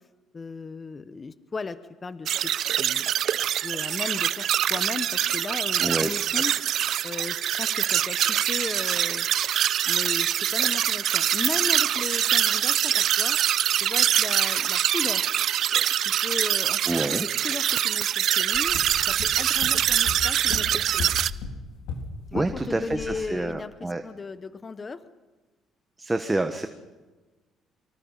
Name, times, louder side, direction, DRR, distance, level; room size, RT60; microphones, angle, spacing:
voice 1, 0.3-2.5 2.8-3.1 3.6-6.6 7.0-9.3 9.8-13.4 13.8-15.2 16.0-18.8 19.1-21.1 22.3-25.0 26.3-26.5, left 4 dB, 30° left, 13 dB, 1.1 m, -36 dB
sound 1, 2.3-21.3, right 10 dB, 65° right, 0.6 m, -24 dB
voice 2, 5.8-6.1 16.9-17.3 22.3-24.0 26.0-26.7, right 2 dB, 15° right, 6 dB, 1.4 m, -27 dB
sound 2, 18.5-22.6 22.9-23.2, left 4 dB, 85° left, 3.5 m, -35 dB
24.5 x 24.5 x 5.6 m, 1.2 s
cardioid pair, 105°, 0 cm